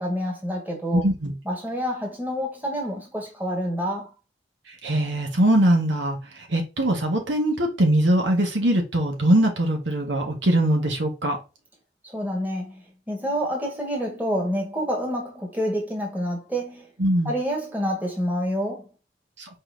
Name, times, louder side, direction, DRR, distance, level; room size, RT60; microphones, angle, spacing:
voice 1, 0.0-1.0 1.4-4.1 12.0-16.9 17.2-18.9, equal, 10° right, 1.7 m, -28 dB
voice 2, 0.9-1.3 4.8-6.2 6.5-11.4 17.0-17.4, right 1 dB, 85° right, 1.7 m, -21 dB
4.6 x 4.2 x 2.7 m
head